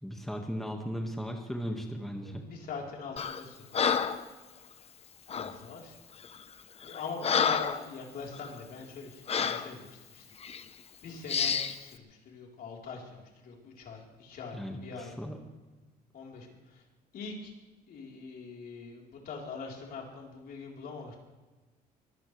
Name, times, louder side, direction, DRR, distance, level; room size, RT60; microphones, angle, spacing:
voice 1, 0.0-2.4 14.5-15.4, equal, ahead, 2 dB, 1.8 m, -37 dB
voice 2, 2.2-4.0 5.3-6.0 6.8-10.3 11.0-15.1 16.1-16.8 17.1-17.5 17.9-21.1, left 4 dB, 60° left, -1 dB, 4.1 m, -43 dB
Breathing, 3.2-3.4 3.7-4.3 5.3-5.6 6.2-6.4 6.8-7.9 8.3-8.5 9.3-9.7 10.4-10.6 11.3-11.8, left 7 dB, 35° left, 0.9 m, -29 dB
23.5 x 16.0 x 3.4 m, 1.2 s
cardioid pair, 110°, 17 cm